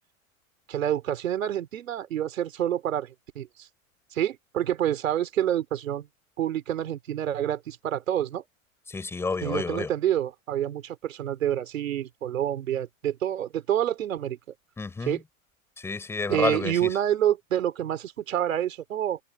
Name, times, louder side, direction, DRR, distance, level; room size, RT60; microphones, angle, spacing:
voice 1, 0.7-3.7 4.1-6.1 6.4-8.4 9.4-14.4 15.0-15.2 16.3-19.2, right 11 dB, 70° right, 3.5 m, -28 dB
voice 2, 8.9-9.9 14.8-15.2 15.8-17.0, left 4 dB, 5° left, 6.8 m, -30 dB
hypercardioid pair, 170°, 41 cm